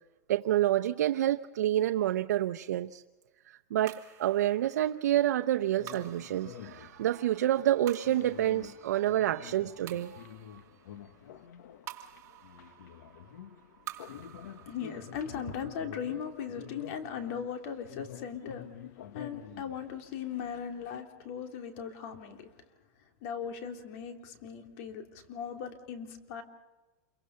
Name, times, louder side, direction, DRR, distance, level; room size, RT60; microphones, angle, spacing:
voice 1, 0.3-3.0 3.7-10.3, right 12 dB, 80° right, 0.8 m, -28 dB
sound 1, 3.9-18.4, right 13 dB, 30° right, 2.5 m, -52 dB
sound 2, 5.7-21.0, left 9 dB, 75° left, 1.5 m, -49 dB
voice 2, 14.7-18.7 19.1-22.5 23.2-26.4, left 7 dB, 50° left, 3.1 m, -38 dB
28.0 x 23.5 x 5.7 m
supercardioid pair, 145°, 9 cm